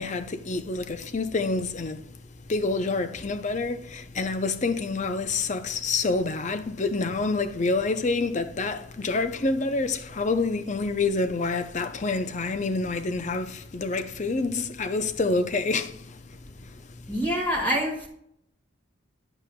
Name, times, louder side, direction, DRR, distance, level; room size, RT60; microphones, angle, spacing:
voice 1, 0.0-2.0 2.5-16.0, left 3 dB, 35° left, 0.6 m, -27 dB
voice 2, 17.1-18.1, equal, 10° left, 1.8 m, -26 dB
9.8 x 8.0 x 2.3 m
head